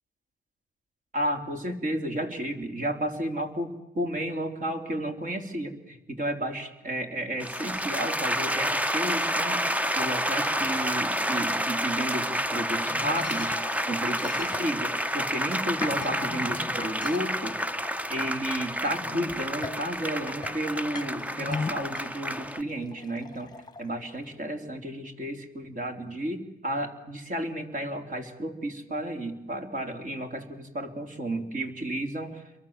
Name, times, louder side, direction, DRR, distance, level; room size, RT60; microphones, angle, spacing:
voice 1, 1.1-17.6 18.1-23.5 23.8-32.6, right 1 dB, 40° right, 4 dB, 3.8 m, -32 dB
sound 1, 7.4-22.6, equal, 5° right, 0.8 m, -29 dB
sound 2, 12.8-18.4 18.8-24.4, left 4 dB, 20° left, 1.3 m, -40 dB
28.5 x 23.0 x 7.5 m, 0.97 s
cardioid pair, 90°, 20 cm